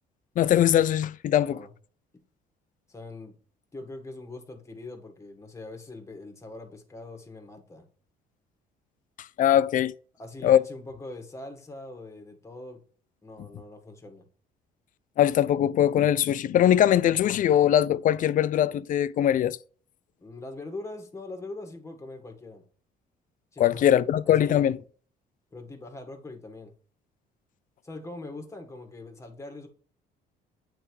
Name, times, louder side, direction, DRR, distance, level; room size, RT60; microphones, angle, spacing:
voice 1, 0.4-1.6 9.4-9.9 10.4-10.6 15.2-19.6 23.6-24.8, left 11 dB, 50° left, 0.5 m, -21 dB
voice 2, 2.9-3.4 3.7-7.9 10.2-12.8 13.2-14.3 20.2-22.6 23.5-24.6 25.5-26.7 27.8-29.7, left 2 dB, 15° left, 1.8 m, -42 dB
8.7 x 3.4 x 4.5 m
cardioid pair, 110°, 17 cm